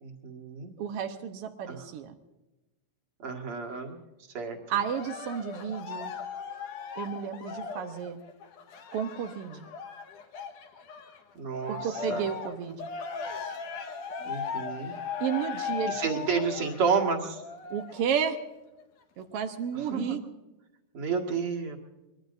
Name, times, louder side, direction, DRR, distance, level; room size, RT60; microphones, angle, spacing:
voice 1, 0.0-0.7 1.7-1.8 3.2-4.0 4.3-4.6 11.4-11.8 12.1-12.3 14.2-14.9 15.9-17.4 19.9-20.2 20.9-21.8, right 5 dB, 45° right, 2 dB, 2.5 m, -30 dB
voice 2, 0.8-2.1 4.7-6.1 7.0-8.2 8.9-9.7 11.7-12.9 15.2-16.0 17.7-18.4 19.2-20.2, right 8 dB, 85° right, 6 dB, 1.3 m, -32 dB
Cheering, 4.9-11.2 11.6-18.2 18.8-18.9, left 6 dB, 65° left, 2.8 m, -38 dB
25.0 x 21.5 x 2.6 m, 1.0 s
omnidirectional pair, 4.0 m